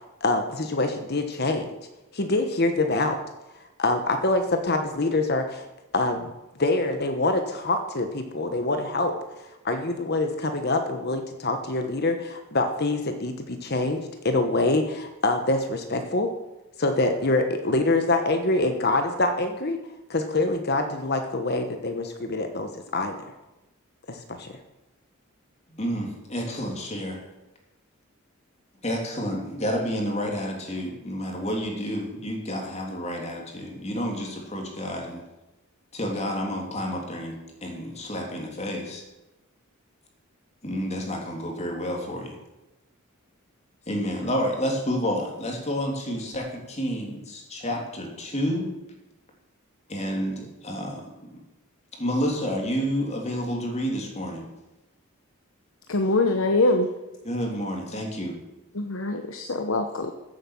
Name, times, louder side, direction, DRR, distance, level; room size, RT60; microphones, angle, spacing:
voice 1, 0.2-1.7 2.1-3.2 3.8-5.7 5.9-6.3 6.6-9.1 9.6-16.3 16.8-19.8 20.1-23.1 24.1-24.5, left 2 dB, 50° left, 6 dB, 1.2 m, -25 dB
voice 2, 25.7-27.2 28.8-35.2 35.9-39.0 40.6-42.4 43.9-48.7 49.9-51.3 52.0-54.4 57.2-58.4, equal, 30° left, 1 dB, 3.0 m, -30 dB
voice 3, 55.9-56.9 58.7-60.1, left 2 dB, 70° left, 5 dB, 1.1 m, -23 dB
14.5 x 8.3 x 7.2 m, 1.0 s
head